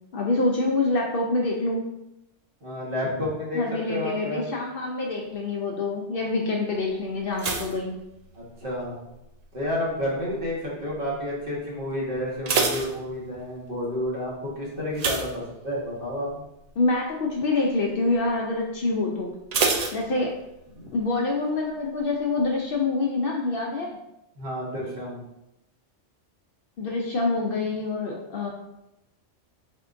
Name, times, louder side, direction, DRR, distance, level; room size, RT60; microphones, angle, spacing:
voice 1, 0.1-1.8 3.5-7.9 16.8-19.3 19.9-20.3 20.9-24.0 26.8-28.5, left 3 dB, 60° left, -1 dB, 0.7 m, -26 dB
voice 2, 2.6-3.6 3.9-4.5 8.3-9.0 9.5-16.3 20.7-20.9 24.4-25.2, left 1 dB, 50° right, -5 dB, 1.4 m, -30 dB
sound 1, 7.3-8.8 9.1-9.6 10.2-10.6 10.9-11.0 11.4-11.5 12.1-13.6 14.9-16.1 16.4-16.7 17.1-17.2 19.5-20.7 21.0-21.1, right 4 dB, 70° right, 0.3 m, -28 dB
4.3 x 3.6 x 2.5 m, 0.89 s
omnidirectional pair, 1.2 m